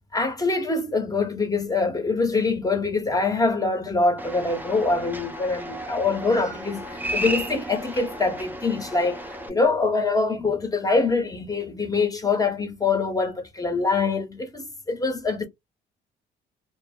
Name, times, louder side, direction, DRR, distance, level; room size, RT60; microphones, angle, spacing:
voice 1, 0.1-15.4, left 3 dB, 20° left, 0.9 m, -24 dB
sound 1, 4.2-9.5, right 1 dB, 10° right, 0.7 m, -34 dB
2.0 x 2.0 x 3.5 m
cardioid pair, 90°, 20 cm